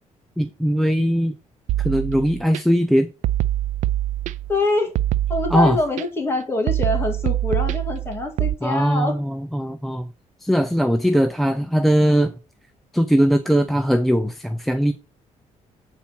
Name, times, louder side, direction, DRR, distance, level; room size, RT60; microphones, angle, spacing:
voice 1, 0.4-1.3 1.8-3.1 5.5-5.8 8.6-10.1 10.4-12.3 12.9-14.9, equal, ahead, 0.4 m, -20 dB
sound 1, 1.7-2.6 3.2-4.6 4.9-6.0 6.7-8.5, right 13 dB, 75° right, 0.4 m, -24 dB
voice 2, 4.5-4.9 5.3-9.2, left 2 dB, 20° left, 2.0 m, -24 dB
8.4 x 4.3 x 5.6 m
cardioid pair, 165°, 13 cm